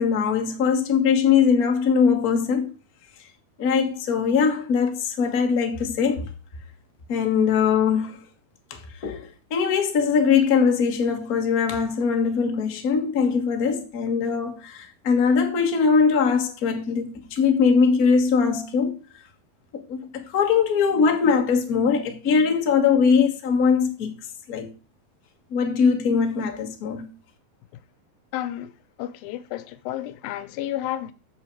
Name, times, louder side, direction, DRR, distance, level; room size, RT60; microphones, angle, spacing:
voice 1, 0.0-2.7 3.6-6.3 7.1-8.2 8.7-19.0 19.7-24.1 24.5-24.7 25.5-27.1, left 6 dB, 40° left, 1.3 m, -21 dB
voice 2, 28.3-28.7 29.0-31.1, left 13 dB, 90° left, 2.5 m, -31 dB
14.5 x 5.6 x 4.7 m
omnidirectional pair, 4.1 m